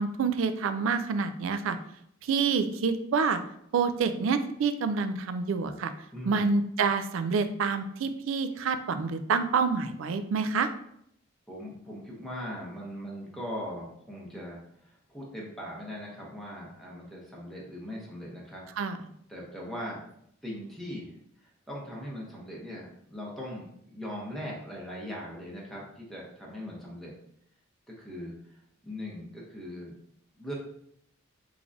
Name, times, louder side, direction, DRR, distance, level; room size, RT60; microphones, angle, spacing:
voice 1, 0.0-1.8 2.2-3.4 3.7-5.9 6.3-10.7 18.8-19.0, right 5 dB, 80° right, 10 dB, 0.4 m, -27 dB
voice 2, 6.1-6.5 11.5-18.6 19.3-20.0 20.4-21.1 21.4-27.1 28.0-30.0 30.4-30.5, equal, ahead, -4 dB, 0.7 m, -40 dB
3.6 x 3.2 x 2.5 m, 0.71 s
head